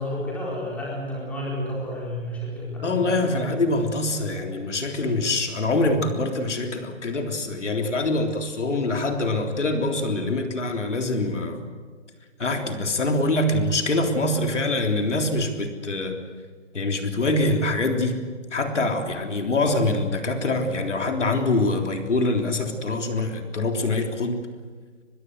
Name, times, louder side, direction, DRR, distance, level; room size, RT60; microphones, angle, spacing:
voice 1, 0.0-3.5, left 1 dB, 5° left, -5 dB, 4.4 m, -31 dB
voice 2, 2.8-11.6 12.4-16.2 16.7-18.2 18.5-24.4, left 2 dB, 70° left, 4 dB, 3.7 m, -24 dB
24.0 x 21.5 x 8.1 m, 1.6 s
hypercardioid pair, 165°, 37 cm